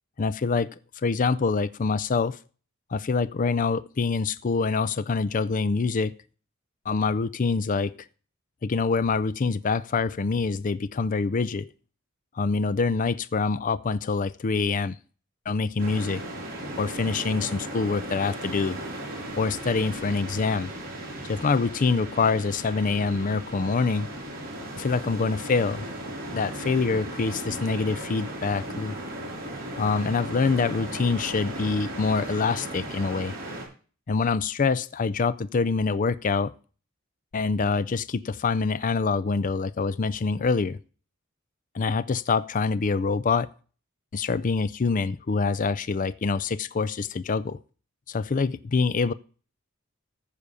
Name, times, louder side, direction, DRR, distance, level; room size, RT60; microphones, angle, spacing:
voice 1, 0.2-0.7 1.0-2.4 2.9-6.1 6.9-8.0 8.6-11.7 12.3-15.0 15.5-16.2 16.8-18.8 19.4-20.7 21.3-24.1 24.8-25.9 26.3-29.0 29.8-33.3 34.1-36.5 37.3-40.8 41.7-43.5 44.1-47.6 48.1-49.1, left 4 dB, 40° left, 0.4 m, -25 dB
sound 1, 15.8-33.6, right 1 dB, 45° right, 5.9 m, -36 dB
14.5 x 5.1 x 6.9 m
head